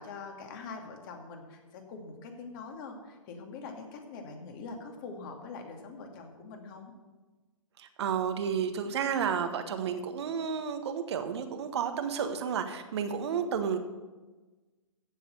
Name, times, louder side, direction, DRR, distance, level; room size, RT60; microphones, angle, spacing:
voice 1, 0.0-6.9, left 4 dB, 40° left, 3 dB, 2.5 m, -44 dB
voice 2, 7.8-13.8, right 7 dB, 50° right, 7 dB, 1.5 m, -31 dB
15.0 x 6.5 x 7.8 m, 1.2 s
figure-of-eight pair, 125°, 18 cm